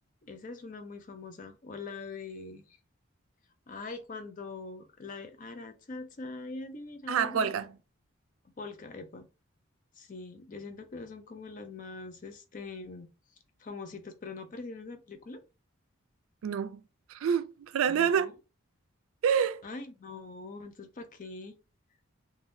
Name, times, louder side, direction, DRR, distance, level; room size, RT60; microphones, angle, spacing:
voice 1, 0.2-2.8 3.7-7.5 8.6-9.3 9.9-13.1 13.6-15.4 17.9-18.3 19.6-21.5, left 3 dB, 40° left, 0.5 m, -43 dB
voice 2, 7.1-7.7 16.4-16.8 17.1-18.3 19.2-19.6, right 7 dB, 80° right, 0.4 m, -27 dB
3.4 x 2.2 x 2.6 m
head